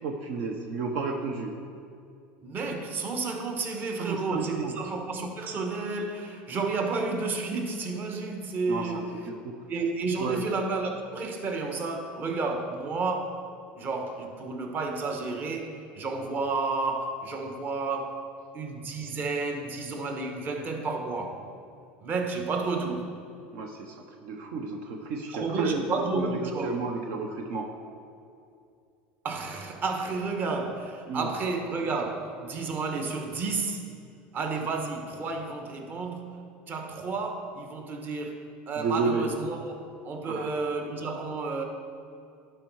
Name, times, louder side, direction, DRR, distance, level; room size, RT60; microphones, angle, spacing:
voice 1, 0.0-1.6 3.7-4.8 8.7-9.5 10.2-10.4 23.5-24.0 24.2-25.8 26.1-27.7 31.1-31.3 38.8-39.3 40.3-40.5, right 4 dB, 65° right, 2 dB, 0.8 m, -32 dB
voice 2, 2.4-9.1 9.7-13.5 13.8-18.3 18.5-21.4 22.0-23.1 25.3-26.8 29.2-33.8 34.3-36.4 36.7-39.8 40.0-41.6, right 3 dB, 40° right, 3 dB, 1.2 m, -31 dB
11.5 x 4.6 x 4.7 m, 2.5 s
supercardioid pair, 105°, 5 cm